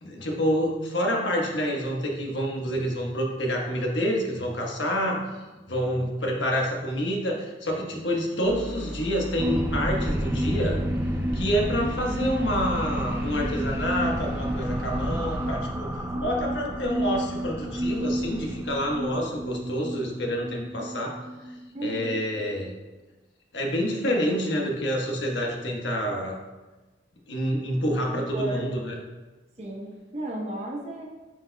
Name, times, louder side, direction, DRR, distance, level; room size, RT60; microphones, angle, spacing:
voice 1, 0.0-5.2 5.7-10.8 11.3-21.1 21.8-22.7 23.5-26.4 27.3-29.0, equal, 75° left, 0 dB, 1.2 m, -28 dB
sound 1, 8.4-15.6, equal, 10° left, 1.3 m, -37 dB
sound 2, 9.4-22.2, equal, 15° right, 0.3 m, -30 dB
voice 2, 21.7-22.2 28.1-28.7 29.6-31.0, right 1 dB, 35° right, -1 dB, 0.9 m, -34 dB
9.8 x 5.2 x 2.2 m, 1.2 s
head